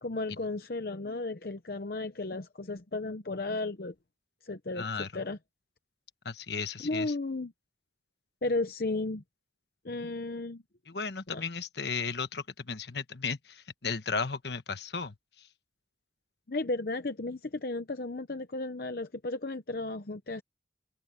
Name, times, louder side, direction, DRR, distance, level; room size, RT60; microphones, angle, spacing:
voice 1, 0.0-3.9 4.4-5.4 6.8-7.5 8.4-9.2 9.8-10.6 11.3-11.4 16.5-20.4, left 2 dB, 55° left, 0.8 m, -34 dB
voice 2, 4.8-5.1 6.2-7.1 10.9-15.1, left 5 dB, 70° left, 1.3 m, -35 dB
head